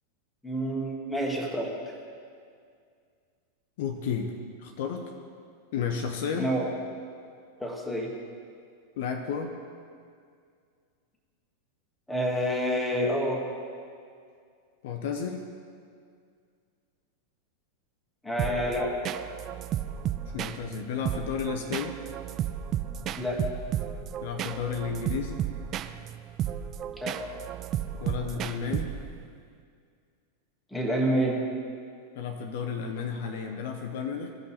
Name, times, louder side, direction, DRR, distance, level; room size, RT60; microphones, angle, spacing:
voice 1, 0.4-1.7 6.3-6.7 7.6-8.1 12.1-13.4 18.2-18.9 23.1-23.4 27.0-27.2 30.7-31.4, equal, 5° left, -2 dB, 1.5 m, -28 dB
voice 2, 3.8-4.3 4.6-5.1 5.7-6.5 9.0-9.6 14.8-15.4 20.3-22.0 24.2-25.4 28.0-28.9 32.2-34.3, left 7 dB, 55° left, 4 dB, 0.6 m, -32 dB
sound 1, 18.4-29.3, right 10 dB, 30° right, 0.3 m, -33 dB
15.5 x 5.4 x 4.2 m, 2.2 s
figure-of-eight pair, 90°, 0 cm